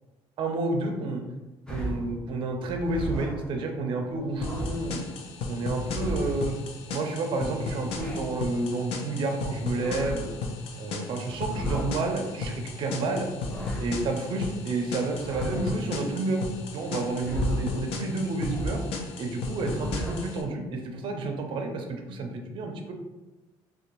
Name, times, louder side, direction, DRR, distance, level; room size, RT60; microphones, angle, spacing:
voice 1, 0.4-1.2 1.7-5.0 5.5-6.5 6.9-10.3 10.8-13.3 13.8-16.4 16.7-18.8 19.2-22.9, right 2 dB, 50° right, 3 dB, 0.4 m, -30 dB
sound 1, 1.7-2.2 2.7-3.5 4.1-5.0 5.7-6.6 7.6-8.4 9.5-10.4 11.3-12.0 13.2-14.1 15.1-15.9 17.0-17.9 18.4-19.0 19.5-20.4, equal, 5° left, 0.5 m, -35 dB
sound 2, 4.4-20.4, left 3 dB, 70° left, 0.4 m, -35 dB
2.5 x 2.1 x 2.9 m, 1.1 s
cardioid pair, 125°, 10 cm